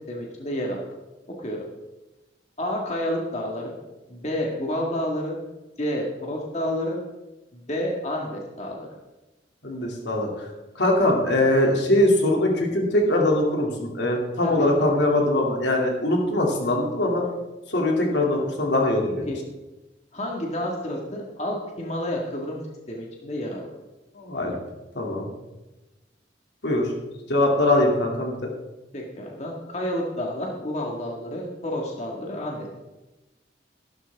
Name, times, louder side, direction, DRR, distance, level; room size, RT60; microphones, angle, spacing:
voice 1, 0.1-0.8 1.4-1.6 2.6-3.7 4.1-5.4 5.8-7.0 7.5-8.9 14.4-14.7 19.3-19.4 20.1-22.6 22.9-23.7 28.9-32.8, left 1 dB, 35° left, -1 dB, 1.8 m, -30 dB
voice 2, 9.6-10.5 10.8-17.3 17.7-19.3 24.1-24.5 24.9-25.3 26.6-26.9 27.3-28.5, left 1 dB, 70° left, 0 dB, 2.5 m, -22 dB
14.5 x 12.0 x 3.5 m, 1.1 s
head